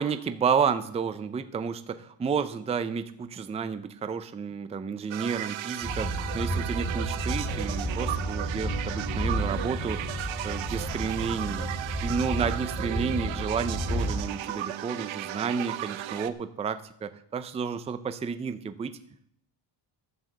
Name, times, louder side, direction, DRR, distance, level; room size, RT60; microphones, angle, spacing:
voice 1, 0.0-11.7 12.0-19.0, right 6 dB, 15° right, 11 dB, 0.4 m, -31 dB
sound 1, 5.1-16.3, right 12 dB, 70° right, 0.9 m, -35 dB
sound 2, 5.8-14.1, right 1 dB, 10° left, 3.1 m, -32 dB
11.5 x 7.3 x 7.3 m, 0.67 s
cardioid pair, 170°, 48 cm